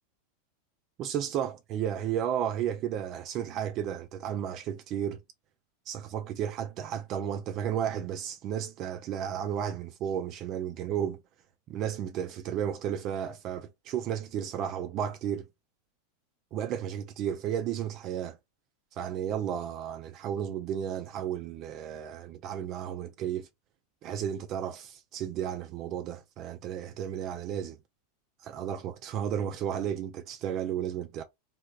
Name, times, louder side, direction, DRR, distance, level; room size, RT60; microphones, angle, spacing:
voice 1, 1.0-5.2 5.9-11.2 11.7-15.5 16.5-18.4 18.9-23.5 24.0-27.8 28.4-31.2, right 9 dB, 45° right, 0.4 m, -33 dB
3.3 x 2.7 x 2.3 m
hypercardioid pair, 95°, 0 cm